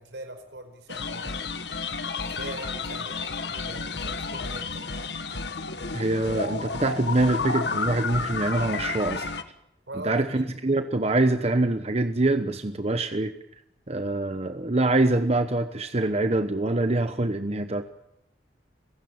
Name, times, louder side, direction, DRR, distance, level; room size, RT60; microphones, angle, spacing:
voice 1, 0.0-1.5 2.2-4.8 9.9-10.5, right 1 dB, 80° right, 8 dB, 4.7 m, -41 dB
sound 1, 0.9-9.4, left 4 dB, 75° left, 1.6 m, -31 dB
voice 2, 5.9-9.3 10.0-13.3 13.9-17.8, right 2 dB, 35° right, 9 dB, 1.0 m, -24 dB
28.0 x 16.0 x 8.8 m, 0.81 s
head